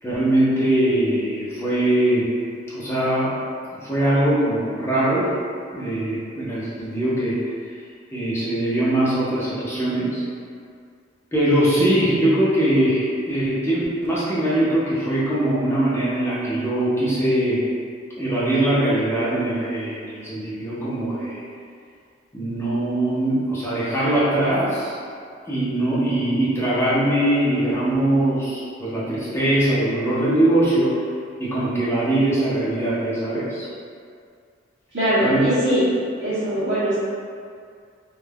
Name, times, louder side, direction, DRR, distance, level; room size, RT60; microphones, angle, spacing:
voice 1, 0.0-2.3 2.7-3.3 3.8-5.3 5.7-7.4 8.1-10.2 11.3-17.6 18.2-21.4 22.3-24.9 25.5-30.9 31.4-33.7 35.2-35.4, right 1 dB, 15° left, -10 dB, 0.7 m, -21 dB
voice 2, 34.9-35.8 36.2-37.0, right 1 dB, 70° right, -15 dB, 1.1 m, -21 dB
3.4 x 2.4 x 2.2 m, 2.2 s
head